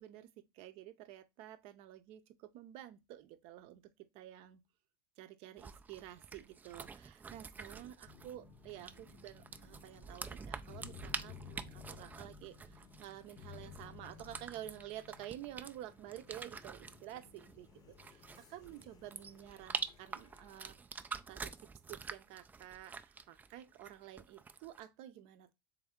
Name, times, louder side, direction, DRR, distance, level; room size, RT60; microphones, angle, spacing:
voice 1, 0.0-4.6 5.2-20.8 21.3-25.5, right 12 dB, 55° right, 0.6 m, -51 dB
sound 1, 5.6-24.8, right 5 dB, 15° right, 0.3 m, -47 dB
sound 2, 8.1-20.7, left 7 dB, 35° left, 0.7 m, -56 dB
3.4 x 3.4 x 3.6 m
hypercardioid pair, 100°, 12 cm